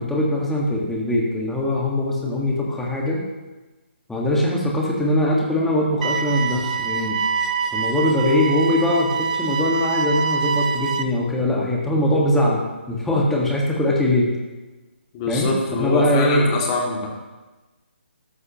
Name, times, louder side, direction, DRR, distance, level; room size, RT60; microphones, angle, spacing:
voice 1, 0.0-3.2 4.1-7.2 7.7-14.3 15.3-16.5, left 1 dB, 5° left, -3 dB, 1.7 m, -21 dB
sound 1, 6.0-11.0, right 5 dB, 40° right, 0.7 m, -25 dB
voice 2, 15.1-17.1, left 3 dB, 25° left, -1 dB, 2.4 m, -24 dB
13.0 x 12.5 x 3.0 m, 1.2 s
figure-of-eight pair, 145°, 6 cm